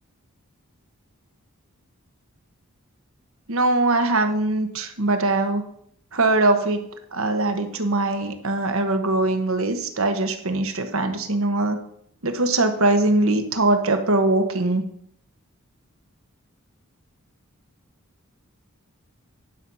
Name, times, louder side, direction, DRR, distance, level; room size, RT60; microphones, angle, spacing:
voice 1, 3.5-5.6 6.1-6.8 7.1-11.8 12.2-14.8, right 2 dB, 70° right, 7 dB, 1.3 m, -21 dB
11.0 x 6.1 x 5.6 m, 0.67 s
head